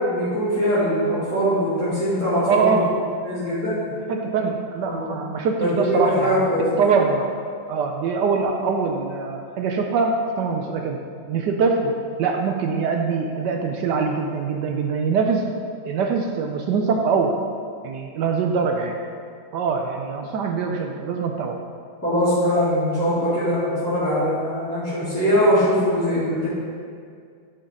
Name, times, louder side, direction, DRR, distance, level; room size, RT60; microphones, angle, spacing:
voice 1, 0.1-2.8 3.2-3.8 4.8-5.2 5.6-6.6 22.0-26.5, equal, 5° left, -15 dB, 2.0 m, -22 dB
voice 2, 2.4-2.9 4.1-6.4 6.7-7.3 7.7-11.0 11.3-11.9 12.2-15.4 15.8-17.4 17.8-19.0 19.5-21.6, right 5 dB, 70° right, 3 dB, 1.1 m, -23 dB
11.0 x 5.2 x 3.7 m, 2.2 s
omnidirectional pair, 2.2 m